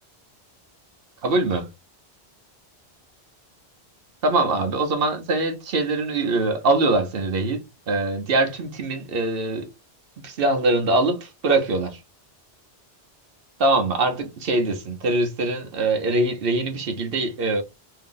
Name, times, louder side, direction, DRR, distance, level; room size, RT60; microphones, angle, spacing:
voice 1, 1.2-1.7 4.2-9.7 10.2-12.0 13.6-17.6, right 2 dB, 60° right, 0.9 m, -23 dB
2.8 x 2.7 x 3.7 m
omnidirectional pair, 1.1 m